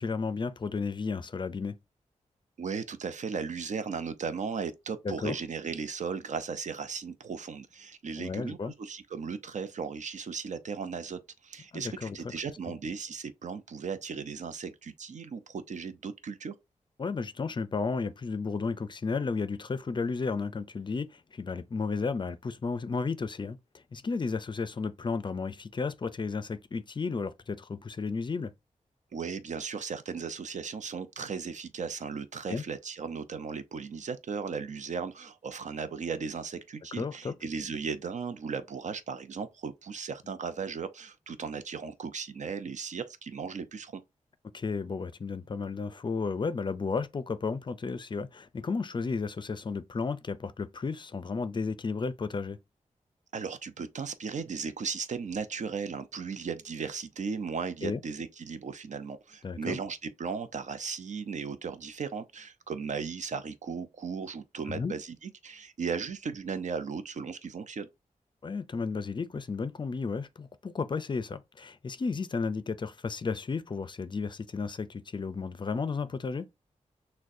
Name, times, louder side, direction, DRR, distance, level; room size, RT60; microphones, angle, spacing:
voice 1, 0.0-1.8 5.0-5.4 8.2-8.7 11.7-12.2 12.7-12.8 17.0-23.6 23.9-28.5 32.5-32.6 37.0-37.3 44.5-52.6 57.8-58.0 59.4-59.8 64.7-64.9 68.4-76.5, left 4 dB, 35° left, 0.4 m, -33 dB
voice 2, 2.6-16.5 29.1-44.0 53.3-67.9, right 5 dB, 65° right, 0.6 m, -36 dB
6.2 x 2.2 x 2.6 m
wide cardioid pair, 110°, 13 cm